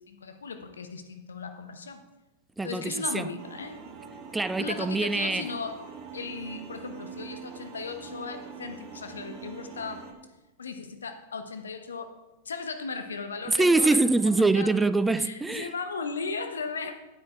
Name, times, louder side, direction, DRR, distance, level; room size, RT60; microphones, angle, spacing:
voice 1, 0.0-2.0 2.6-3.8 4.6-5.8 6.1-10.0 10.6-12.1 12.4-14.0 14.5-14.7 15.2-16.9, left 4 dB, 80° left, 1.0 m, -36 dB
voice 2, 2.6-3.3 4.3-5.5 13.5-15.7, right 3 dB, 10° right, 0.4 m, -24 dB
sound 1, 3.4-10.1, right 6 dB, 40° right, 1.8 m, -44 dB
9.0 x 8.6 x 4.5 m
hypercardioid pair, 100°, 0 cm